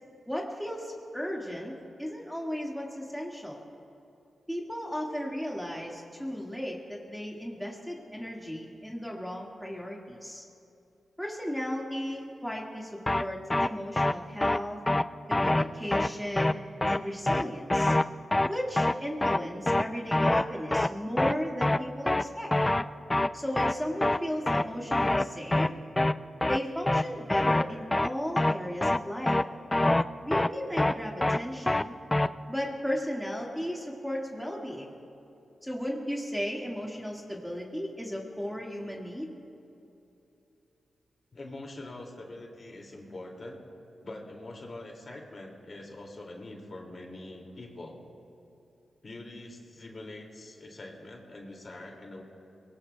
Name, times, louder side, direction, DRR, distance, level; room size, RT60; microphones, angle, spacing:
voice 1, 0.3-3.6 4.5-10.4 11.2-14.8 15.3-16.5 16.8-17.9 18.5-22.5 23.3-25.7 26.5-29.4 30.2-31.9 32.5-34.9 35.6-39.3, equal, ahead, -2 dB, 1.8 m, -35 dB
sound 1, 13.1-13.2 13.5-13.7 14.0-14.1 14.4-14.6 14.9-15.0 15.3-15.6 15.9-16.1 16.4-16.5 16.8-17.0 17.3-17.4 17.7-18.0 18.3-18.5 18.8-18.9 19.2-19.4 19.7-19.8 20.1-20.4 20.7-20.9 21.2-21.3 21.6-21.8 22.1-22.2 22.5-22.8 23.1-23.3 23.6-23.7 24.0-24.2 24.5-24.6 24.9-25.2 25.5-25.7 26.0-26.1 26.4-26.6 26.9-27.0 27.3-27.6 27.9-28.1 28.4-28.5 28.8-29.0 29.3-29.4 29.7-30.0 30.3-30.5 30.8-30.9 31.2-31.4 31.7-31.8 32.1-32.3, left 1 dB, 20° left, 0.4 m, -24 dB
voice 2, 41.3-43.6 44.0-48.0 49.0-52.2, left 2 dB, 45° left, 0 dB, 2.4 m, -44 dB
23.0 x 19.5 x 2.3 m, 2.8 s
cardioid pair, 75°, 0 cm